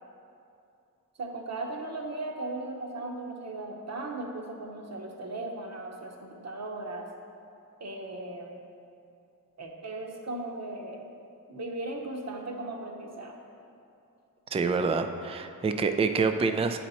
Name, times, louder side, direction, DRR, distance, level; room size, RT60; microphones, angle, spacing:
voice 1, 1.2-7.1 7.8-8.6 9.6-11.1 11.5-13.4, right 2 dB, 45° right, 2 dB, 0.9 m, -37 dB
voice 2, 14.5-16.8, right 4 dB, 15° right, 8 dB, 0.3 m, -27 dB
8.4 x 4.3 x 4.1 m, 2.7 s
cardioid pair, 55°, 36 cm